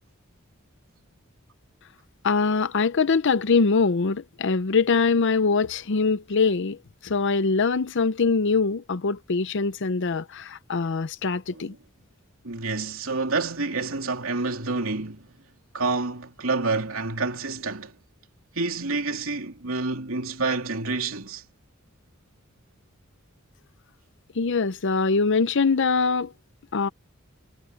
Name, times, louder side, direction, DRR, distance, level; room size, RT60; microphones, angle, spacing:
voice 1, 2.2-6.8 7.0-11.7 24.4-26.3 26.7-26.9, left 4 dB, 60° left, 0.7 m, -23 dB
voice 2, 12.4-15.3 15.7-17.9 18.5-21.4, right 3 dB, 85° right, 3.0 m, -28 dB
head